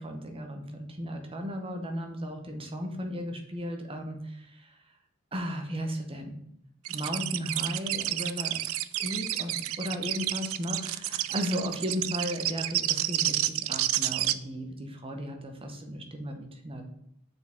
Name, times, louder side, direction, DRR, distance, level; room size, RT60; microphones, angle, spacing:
voice 1, 0.0-4.8 5.3-6.4 6.9-8.6 9.0-16.9, equal, 25° right, 4 dB, 0.9 m, -35 dB
sound 1, 6.8-14.3, right 14 dB, 70° right, 0.4 m, -30 dB
6.7 x 4.7 x 3.6 m, 0.77 s
head